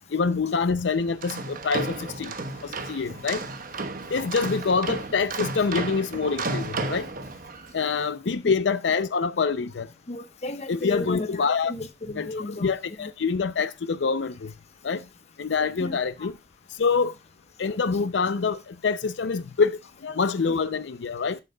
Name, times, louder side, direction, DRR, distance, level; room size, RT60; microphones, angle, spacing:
voice 1, 0.1-2.3 2.6-3.4 4.1-7.1 7.7-9.9 10.7-11.7 12.1-14.5 14.8-15.0 15.4-16.4 16.8-17.1 17.6-21.4, left 5 dB, 85° left, 0.5 m, -26 dB
sound 1, 1.1-7.7, right 3 dB, 50° right, 1.1 m, -33 dB
voice 2, 10.1-12.7 13.0-13.1 15.8-16.3 19.0-19.1, left 2 dB, 35° left, 1.0 m, -35 dB
13.5 x 7.5 x 2.2 m
head